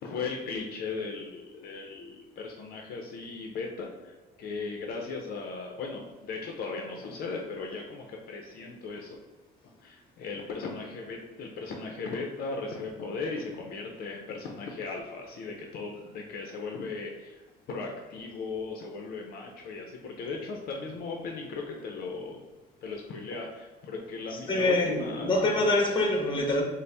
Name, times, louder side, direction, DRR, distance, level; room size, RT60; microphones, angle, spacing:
voice 1, 0.0-9.2 9.8-17.4 17.7-22.4 22.8-25.3, left 4 dB, 65° left, 1 dB, 0.5 m, -37 dB
voice 2, 24.5-26.6, left 2 dB, 30° left, 1 dB, 0.8 m, -25 dB
4.0 x 2.0 x 3.3 m, 1.2 s
cardioid pair, 110°, 17 cm